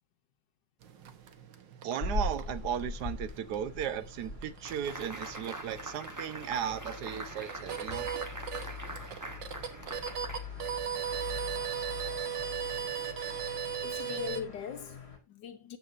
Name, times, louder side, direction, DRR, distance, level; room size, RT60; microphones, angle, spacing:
sound 1, 0.8-14.4, right 8 dB, 85° right, 1.8 m, -39 dB
voice 1, 1.8-8.1, right 9 dB, 70° right, 1.3 m, -36 dB
sound 2, 2.0-15.2, left 3 dB, 35° left, 2.6 m, -42 dB
sound 3, 4.7-11.1, right 1 dB, 15° right, 0.7 m, -44 dB
voice 2, 13.8-15.8, left 7 dB, 75° left, 1.4 m, -40 dB
13.0 x 7.8 x 2.6 m
omnidirectional pair, 2.0 m